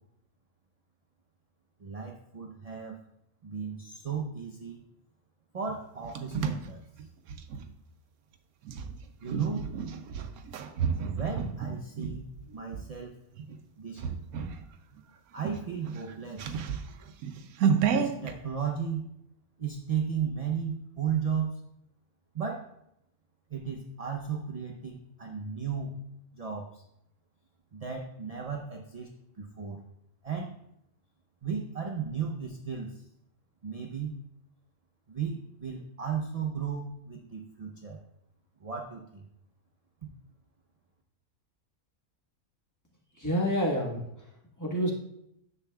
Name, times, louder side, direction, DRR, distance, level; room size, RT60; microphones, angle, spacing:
voice 1, 1.8-3.0 3.4-4.8 5.5-7.1 9.2-9.6 11.0-12.3 12.5-13.2 13.8-14.0 15.3-16.6 17.8-19.1 19.6-21.6 22.3-22.7 23.5-26.0 26.3-26.8 27.7-29.8 30.2-30.6 31.4-33.0 33.6-34.1 35.1-38.0 38.6-39.3, right 6 dB, 45° right, 0 dB, 0.4 m, -35 dB
sound 1, 5.7-7.7 8.6-12.9 13.4-13.6 14.0-14.6 15.0-15.1 15.4-18.3, right 6 dB, 90° right, 1.1 m, -31 dB
voice 2, 43.1-44.3 44.6-44.9, equal, 15° left, -3 dB, 1.3 m, -28 dB
10.0 x 7.1 x 2.3 m, 0.78 s
omnidirectional pair, 1.5 m